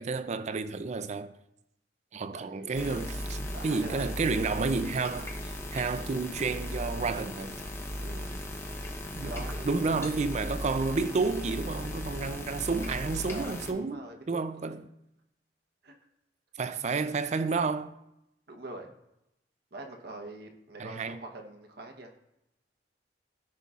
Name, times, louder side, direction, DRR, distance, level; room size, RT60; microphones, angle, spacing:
voice 1, 0.0-1.3 2.1-7.5 9.1-14.8 16.6-17.9 20.8-21.2, right 4 dB, 40° right, 0.4 m, -31 dB
voice 2, 2.3-3.2 3.5-4.2 8.0-8.4 9.2-10.0 13.3-14.8 15.8-15.9 18.5-18.9 19.7-22.1, right 2 dB, 65° right, 0.9 m, -44 dB
sound 1, 2.7-13.7, left 1 dB, 15° left, 0.9 m, -37 dB
14.0 x 5.3 x 2.4 m
head